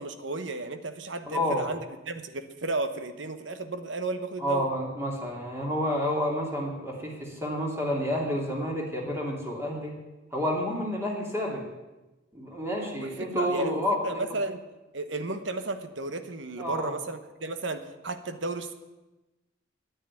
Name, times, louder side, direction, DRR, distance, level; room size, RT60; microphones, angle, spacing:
voice 1, 0.0-1.8 2.1-4.6 13.0-14.6 14.9-18.7, right 2 dB, 70° right, 10 dB, 1.1 m, -33 dB
voice 2, 1.3-1.7 4.4-9.9 10.3-11.6 12.3-14.2 16.6-17.0, equal, 15° right, -1 dB, 2.7 m, -29 dB
9.9 x 9.5 x 9.7 m, 1.1 s
head